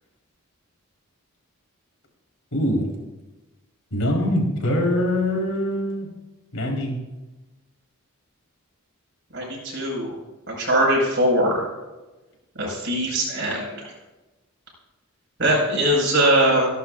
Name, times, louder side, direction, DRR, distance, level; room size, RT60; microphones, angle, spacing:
voice 1, 2.5-2.9 3.9-6.1 6.5-7.0, left 1 dB, 70° left, -1 dB, 4.2 m, -23 dB
voice 2, 9.3-10.1 10.5-11.6 12.6-13.9 15.4-16.7, right 1 dB, 55° right, -3 dB, 5.5 m, -21 dB
27.0 x 11.0 x 2.6 m, 1.1 s
head